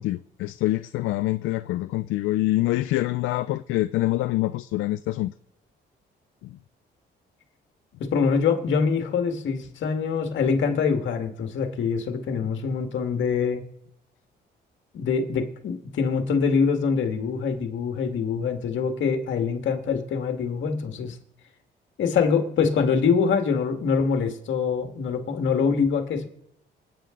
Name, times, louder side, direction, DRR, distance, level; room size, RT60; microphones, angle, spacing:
voice 1, 0.0-5.3, left 17 dB, 85° left, 0.4 m, -25 dB
voice 2, 8.0-13.6 14.9-21.2 22.0-26.3, left 5 dB, 70° left, 1.9 m, -24 dB
25.5 x 9.0 x 3.8 m
cardioid pair, 90°, 20 cm